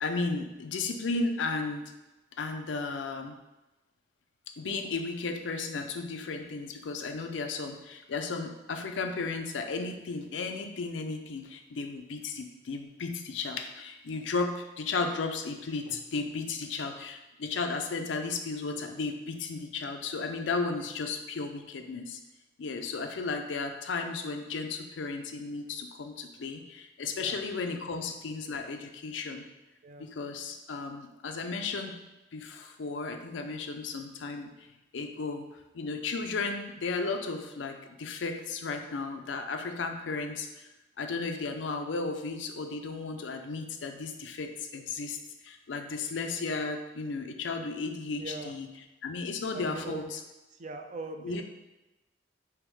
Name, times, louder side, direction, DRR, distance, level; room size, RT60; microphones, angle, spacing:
voice 1, 0.0-1.9 2.4-3.4 4.6-22.2 22.6-29.4 30.0-32.0 32.3-34.7 34.9-40.7 41.0-45.2 45.4-48.7 49.0-50.0 51.2-51.4, left 4 dB, 85° left, 5 dB, 0.5 m, -34 dB
voice 2, 48.2-48.5 49.5-50.1 50.5-51.4, right 2 dB, 40° right, 6 dB, 0.4 m, -41 dB
3.6 x 3.0 x 4.7 m, 1.0 s
head